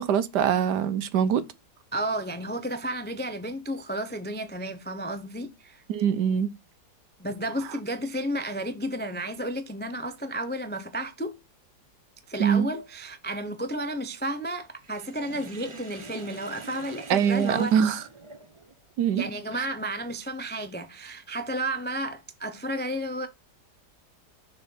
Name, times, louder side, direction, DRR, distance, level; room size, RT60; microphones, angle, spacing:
voice 1, 0.0-1.4 5.9-6.5 12.4-12.7 17.1-18.0 19.0-19.3 19.6-19.7, right 8 dB, 75° right, 1.3 m, -23 dB
voice 2, 1.9-5.8 7.2-11.4 12.3-17.7 19.1-23.3, right 1 dB, 15° left, 0.3 m, -32 dB
Sink (filling or washing), 14.8-18.8, right 3 dB, 25° right, 0.6 m, -44 dB
6.7 x 4.2 x 5.5 m
omnidirectional pair, 1.9 m